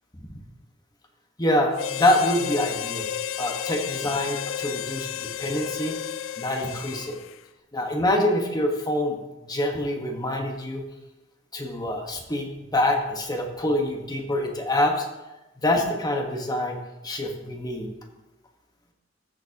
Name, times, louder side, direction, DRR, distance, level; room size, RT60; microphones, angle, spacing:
voice 1, 1.4-3.1 3.4-6.0 6.4-7.2 7.7-10.8 11.5-15.0 15.6-16.8 17.0-17.9, left 1 dB, 20° left, 2 dB, 1.3 m, -25 dB
Harmonica, 1.7-7.4, left 10 dB, 90° left, 0.4 m, -32 dB
14.5 x 7.0 x 2.9 m, 1.0 s
head